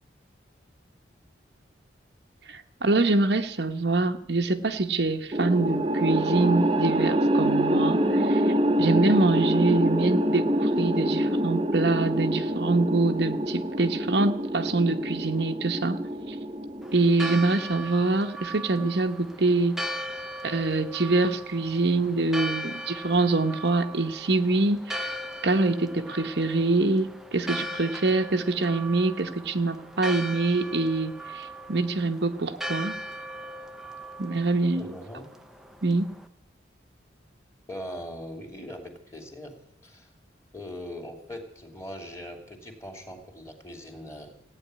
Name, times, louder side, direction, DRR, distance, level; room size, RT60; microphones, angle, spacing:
voice 1, 2.5-16.0 16.3-16.4 16.9-20.0 20.4-25.1 25.4-33.0 34.2-35.0 35.8-36.1, right 3 dB, 60° right, 5 dB, 1.0 m, -25 dB
sound 1, 5.3-17.6, right 1 dB, 25° right, 0.9 m, -26 dB
Church bell, 16.8-36.2, equal, ahead, 0.7 m, -38 dB
voice 2, 34.7-35.3 37.7-39.6 39.8-40.1 40.5-44.3, left 1 dB, 15° left, 4 dB, 2.7 m, -40 dB
16.5 x 9.2 x 9.5 m, 0.73 s
head